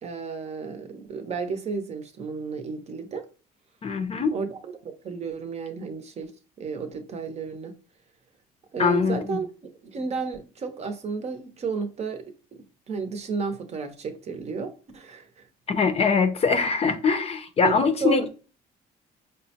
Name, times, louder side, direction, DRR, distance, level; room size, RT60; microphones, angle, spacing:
voice 1, 0.0-3.3 4.3-6.3 6.6-7.7 8.7-9.5 9.8-12.2 12.6-15.5 17.6-18.3, right 5 dB, 40° right, 0.7 m, -32 dB
voice 2, 3.8-4.3 8.8-9.4 15.7-18.3, left 5 dB, 35° left, 0.6 m, -23 dB
5.0 x 2.1 x 2.8 m
cardioid pair, 110°, 17 cm